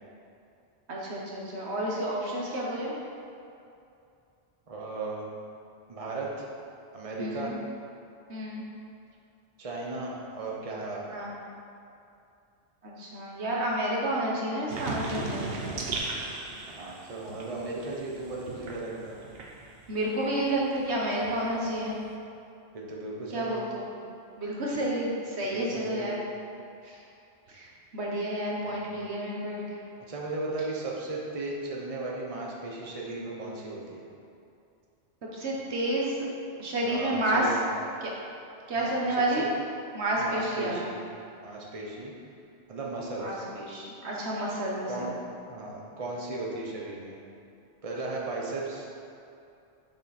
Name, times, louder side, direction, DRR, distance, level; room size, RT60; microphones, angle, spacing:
voice 1, 0.9-3.0 7.2-7.6 8.3-8.7 11.1-11.4 12.8-15.5 19.9-22.0 23.3-23.9 24.4-26.2 26.8-27.0 27.5-27.7 27.9-29.6 35.3-36.3 36.6-37.4 38.7-39.5 39.9-40.8 43.2-45.2, right 1 dB, 80° right, -3 dB, 1.6 m, -30 dB
voice 2, 4.7-5.3 5.9-6.5 6.9-7.5 9.6-11.0 16.6-19.2 22.7-23.7 25.4-26.2 28.7-28.9 30.1-34.0 36.8-37.7 38.7-39.4 40.1-41.0 41.4-42.1 42.7-43.4 44.9-45.1 45.5-47.2 47.8-48.9, right 2 dB, 35° right, -3 dB, 1.1 m, -36 dB
sound 1, 14.7-20.1 20.4-22.1, right 3 dB, 65° right, 1.1 m, -38 dB
7.7 x 7.0 x 4.3 m, 2.6 s
omnidirectional pair, 1.1 m